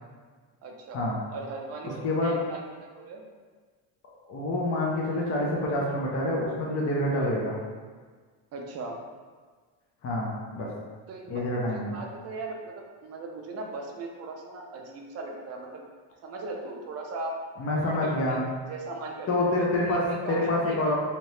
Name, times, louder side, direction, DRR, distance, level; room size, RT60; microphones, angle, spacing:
voice 1, 0.6-1.0 1.3-3.2 8.5-9.0 10.7-10.8 11.1-11.4 11.7-15.9 16.2-17.3 17.8-21.0, right 3 dB, 35° right, 1 dB, 0.4 m, -39 dB
voice 2, 4.3-7.5 10.0-10.7 11.3-11.9 17.6-18.4 19.3-20.0 20.3-21.0, left 1 dB, 30° left, -3 dB, 0.4 m, -27 dB
2.8 x 2.7 x 3.1 m, 1.5 s
cardioid pair, 140°, 50 cm